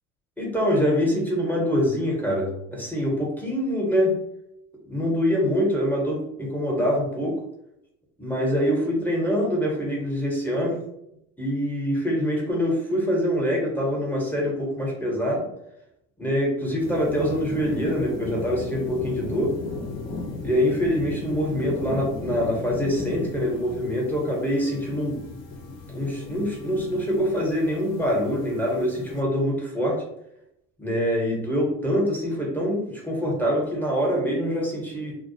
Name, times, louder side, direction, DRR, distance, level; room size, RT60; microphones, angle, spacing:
voice 1, 0.4-4.2 4.9-7.4 8.2-10.8 11.4-15.5 16.2-19.6 20.4-25.2 25.9-30.0 30.8-35.2, equal, 5° left, -2 dB, 0.8 m, -24 dB
sound 1, 16.8-29.2, left 2 dB, 55° left, 0.7 m, -36 dB
2.3 x 2.0 x 2.6 m, 0.80 s
supercardioid pair, 95°, 32 cm